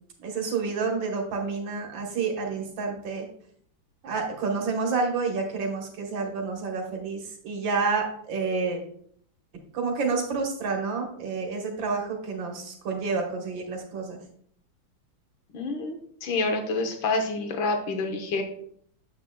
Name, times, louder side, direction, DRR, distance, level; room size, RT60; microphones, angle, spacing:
voice 1, 0.2-3.3 4.0-8.8 9.7-14.2, right 4 dB, 70° right, 1 dB, 1.9 m, -29 dB
voice 2, 15.5-18.4, left 3 dB, 75° left, 4 dB, 1.7 m, -28 dB
7.8 x 7.3 x 2.2 m, 0.63 s
omnidirectional pair, 2.2 m